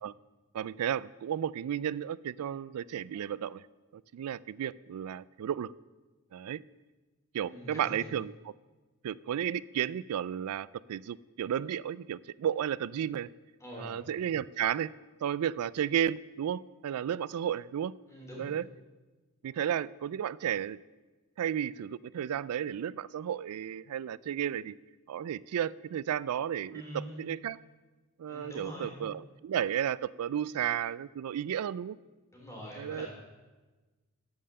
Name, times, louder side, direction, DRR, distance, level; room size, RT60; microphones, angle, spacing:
voice 1, 0.5-3.6 4.1-5.7 6.3-6.6 7.3-8.3 9.0-13.3 13.8-14.9 15.2-17.9 18.4-18.6 19.4-20.8 21.4-24.7 25.1-27.6 28.2-32.0 32.8-33.1, right 9 dB, 85° right, 20 dB, 0.3 m, -33 dB
voice 2, 7.5-8.0 13.6-14.0 18.1-18.5 26.7-27.1 28.3-29.0 32.3-33.1, equal, 15° left, -3 dB, 3.0 m, -44 dB
13.5 x 5.6 x 6.6 m, 1.2 s
head